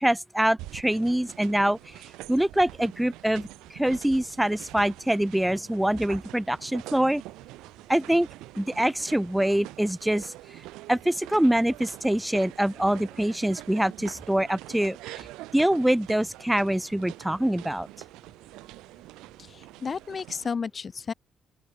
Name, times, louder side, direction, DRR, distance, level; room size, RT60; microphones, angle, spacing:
voice 1, 0.0-1.9 2.3-7.2 7.9-8.3 8.6-10.3 10.9-15.3 15.5-17.9, right 1 dB, 5° right, 1.3 m, -25 dB
sound 1, 0.6-20.5, right 18 dB, 90° right, 4.0 m, -45 dB
voice 2, 19.4-21.1, left 5 dB, 45° left, 0.9 m, -33 dB
open air
supercardioid pair, 65°, 0 cm